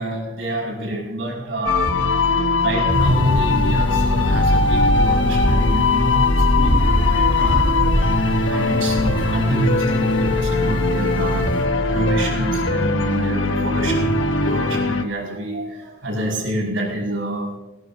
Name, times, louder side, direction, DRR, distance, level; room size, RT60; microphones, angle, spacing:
voice 1, 0.0-1.8 2.6-7.9 8.2-11.5 11.9-17.5, equal, 75° right, -1 dB, 5.5 m, -26 dB
sound 1, 1.6-15.0, left 3 dB, 80° left, 1.1 m, -20 dB
sound 2, 2.9-11.6, equal, 10° left, 6.8 m, -22 dB
20.5 x 17.0 x 2.7 m, 1.0 s
head